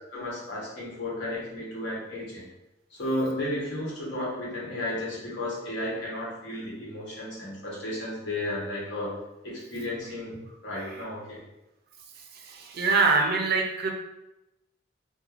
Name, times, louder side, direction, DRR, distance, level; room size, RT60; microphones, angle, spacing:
voice 1, 0.1-2.4 2.9-9.1 9.4-10.4 10.6-11.4, left 1 dB, 65° left, -6 dB, 1.1 m, -33 dB
voice 2, 12.4-13.9, right 4 dB, 55° right, 2 dB, 0.4 m, -24 dB
3.1 x 2.2 x 2.4 m, 0.93 s
head